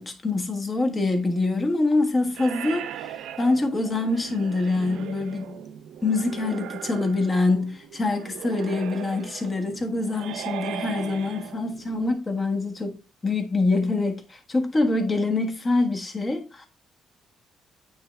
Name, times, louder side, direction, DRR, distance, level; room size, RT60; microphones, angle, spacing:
voice 1, 0.0-5.6 6.0-13.0 13.2-16.7, left 3 dB, 30° left, 1.5 m, -25 dB
sound 1, 2.4-12.1, right 10 dB, 85° right, 0.4 m, -38 dB
9.1 x 3.3 x 3.4 m
cardioid pair, 90°, 0 cm